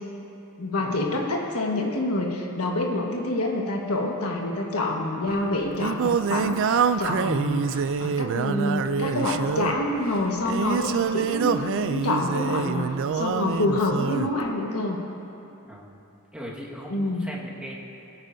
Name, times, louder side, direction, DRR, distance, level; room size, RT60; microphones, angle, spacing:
voice 1, 0.6-12.9 13.1-15.0 16.9-17.3, left 2 dB, 85° left, 0 dB, 1.4 m, -27 dB
Singing, 5.3-14.3, right 6 dB, 60° right, 0.4 m, -26 dB
voice 2, 15.6-16.0 16.3-17.7, equal, 5° right, -5 dB, 1.6 m, -39 dB
22.0 x 9.0 x 2.7 m, 2.9 s
head